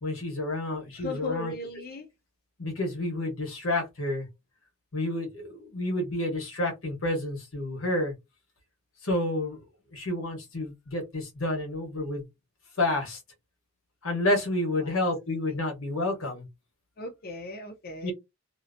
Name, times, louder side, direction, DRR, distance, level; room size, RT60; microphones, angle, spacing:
voice 1, 0.0-1.5 2.6-4.3 4.9-8.1 9.0-9.6 9.9-12.3 12.8-13.2 14.0-16.5 18.0-18.1, left 1 dB, 75° left, 1.1 m, -29 dB
voice 2, 0.9-2.1 14.8-15.0 15.5-15.6 17.0-18.1, left 2 dB, 45° left, 0.5 m, -37 dB
2.8 x 2.1 x 2.5 m
head